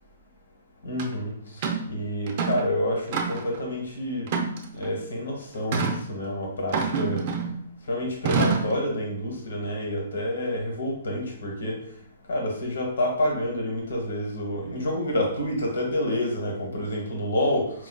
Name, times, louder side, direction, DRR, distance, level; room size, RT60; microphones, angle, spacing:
voice 1, 0.8-1.3 1.9-4.3 4.7-7.2 7.9-11.8 12.3-17.7, left 1 dB, 80° left, 0 dB, 1.2 m, -28 dB
sound 1, 1.0-1.1 1.6-1.9 2.3-2.7 3.1-3.6 4.3-4.9 5.7-6.0 6.7-7.6 8.3-8.8, right 5 dB, 45° right, 0.5 m, -26 dB
4.4 x 2.5 x 2.2 m, 0.65 s
hypercardioid pair, 150°, 0 cm